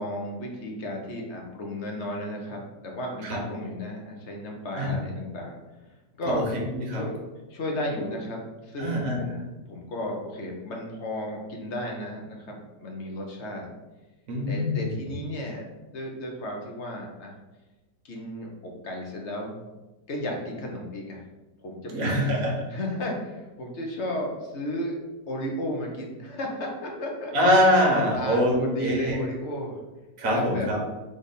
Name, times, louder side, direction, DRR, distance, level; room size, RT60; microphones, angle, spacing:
voice 1, 0.0-5.6 6.2-6.5 6.9-7.2 7.5-13.7 14.5-15.6 15.9-17.3 18.0-19.5 20.1-21.2 21.6-22.3 22.7-25.0 25.3-27.3 28.1-29.8 30.3-30.7, left 1 dB, 50° left, 0 dB, 0.9 m, -34 dB
voice 2, 6.3-7.0 8.8-9.2 14.3-14.9 21.9-22.6 27.3-29.2 30.2-30.8, equal, 50° right, -1 dB, 1.4 m, -24 dB
3.7 x 3.3 x 4.1 m, 1.1 s
omnidirectional pair, 1.9 m